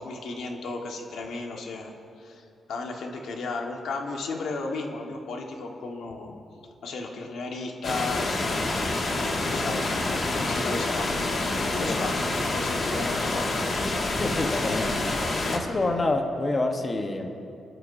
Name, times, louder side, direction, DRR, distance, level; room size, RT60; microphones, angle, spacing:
voice 1, 0.0-1.9 2.2-6.4 6.8-11.2 11.7-13.5 14.0-14.1, left 3 dB, 80° left, 1 dB, 1.5 m, -34 dB
sound 1, 7.8-15.6, left 2 dB, 50° left, 2.0 m, -27 dB
voice 2, 14.2-15.0 15.5-17.3, left 2 dB, 35° left, 4 dB, 1.1 m, -27 dB
27.5 x 11.5 x 2.7 m, 2.6 s
cardioid pair, 85°, 0 cm